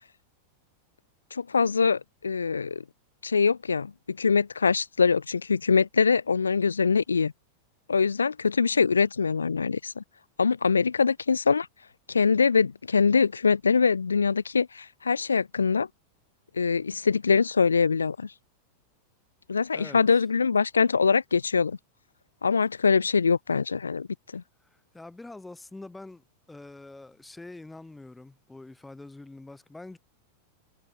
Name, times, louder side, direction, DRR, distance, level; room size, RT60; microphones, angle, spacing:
voice 1, 1.3-2.8 3.2-7.3 7.9-10.0 10.4-11.7 12.1-15.9 16.6-18.3 19.5-21.8 22.4-24.1 24.3-24.4, left 5 dB, 75° left, 0.5 m, -23 dB
voice 2, 24.6-30.0, left 2 dB, 5° left, 4.1 m, -45 dB
figure-of-eight pair, 90°, 0 cm